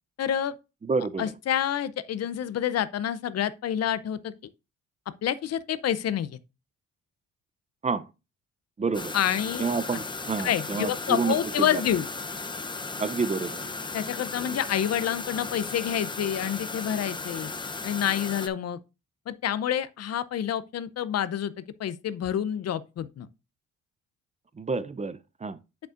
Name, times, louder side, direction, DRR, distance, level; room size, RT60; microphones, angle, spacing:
voice 1, 0.2-0.5 1.2-4.3 5.2-6.4 9.1-9.6 10.4-12.1 13.9-17.5 17.8-18.8 19.3-23.3, left 10 dB, 55° left, 0.6 m, -28 dB
voice 2, 0.8-1.3 7.8-8.1 8.8-9.1 9.6-11.8 13.0-13.7 24.6-25.6, right 4 dB, 25° right, 0.5 m, -29 dB
sound 1, 8.9-18.5, left 3 dB, 15° left, 0.7 m, -36 dB
7.9 x 6.8 x 2.5 m
cardioid pair, 90°, 30 cm